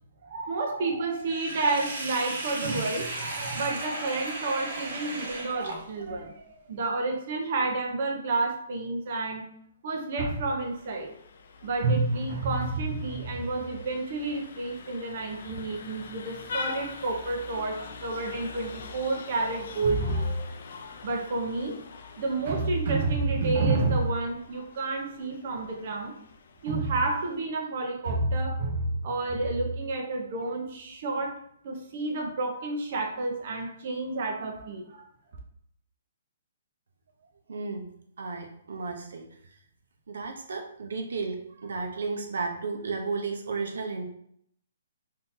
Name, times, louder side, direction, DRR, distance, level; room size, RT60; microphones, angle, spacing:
voice 1, 0.2-9.4 9.8-11.1 11.6-20.4 21.0-21.8 22.2-26.1 26.6-31.4 31.6-35.0, right 3 dB, 40° right, 1 dB, 0.5 m, -29 dB
Sink (filling or washing), 1.3-6.2, right 2 dB, 60° right, 0.9 m, -35 dB
Vehicle horn car horn honking, 10.6-27.4, left 4 dB, 45° left, 0.4 m, -44 dB
voice 2, 37.5-37.9 38.2-39.3 40.1-44.0, right 4 dB, 80° right, 3 dB, 0.6 m, -33 dB
3.6 x 2.6 x 2.6 m, 0.68 s
hypercardioid pair, 175°, 0 cm